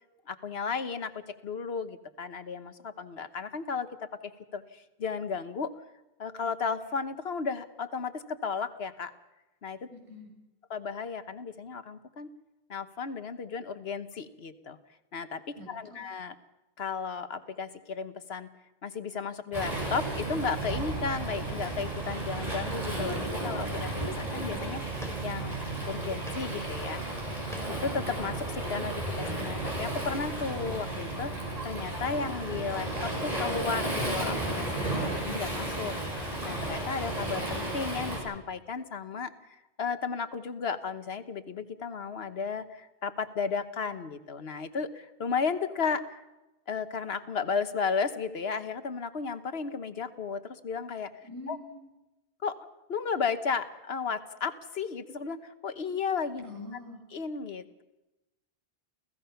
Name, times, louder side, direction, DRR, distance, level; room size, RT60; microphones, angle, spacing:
voice 1, 0.3-4.1 4.5-5.7 6.2-9.1 9.6-9.9 10.7-12.3 12.7-14.8 15.1-15.4 15.7-16.3 16.8-18.5 18.8-23.9 24.2-24.8 25.2-25.6 25.8-27.0 27.8-31.3 31.6-35.9 36.4-46.2 46.7-51.1 51.5-51.6 52.4-52.6 52.9-56.4 57.1-57.8, left 5 dB, 70° left, 10 dB, 1.3 m, -34 dB
voice 2, 9.9-10.3 15.6-16.0 51.2-51.9 56.4-57.0, left 1 dB, 80° right, 0 dB, 6.4 m, -44 dB
Waves surf, 19.5-38.2, right 2 dB, 35° right, 6.7 m, -33 dB
sound 1, 25.0-25.6 26.0-26.6 26.9-27.9, equal, ahead, 4.0 m, -47 dB
29.5 x 16.0 x 5.8 m, 1.0 s
omnidirectional pair, 1.1 m